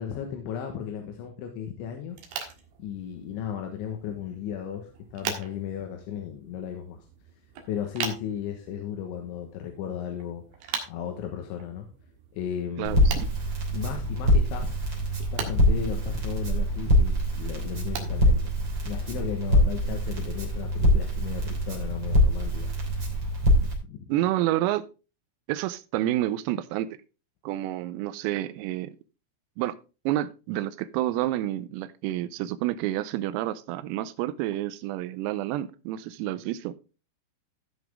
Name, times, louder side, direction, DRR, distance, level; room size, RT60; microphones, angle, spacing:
voice 1, 0.0-2.2 2.8-7.0 7.7-10.4 10.9-11.9 12.3-13.3 13.7-14.8 15.2-18.5 18.9-22.7 23.6-24.1, left 9 dB, 70° left, 3.3 m, -35 dB
sound 1, 2.1-19.4, right 6 dB, 60° right, 2.9 m, -42 dB
Crackle, 12.8-23.7, equal, 25° right, 3.0 m, -24 dB
voice 2, 12.8-13.3 24.1-24.9 25.5-27.0 27.5-28.9 29.6-29.8 30.1-36.8, right 14 dB, 85° right, 3.4 m, -29 dB
16.0 x 5.9 x 3.5 m
omnidirectional pair, 6.0 m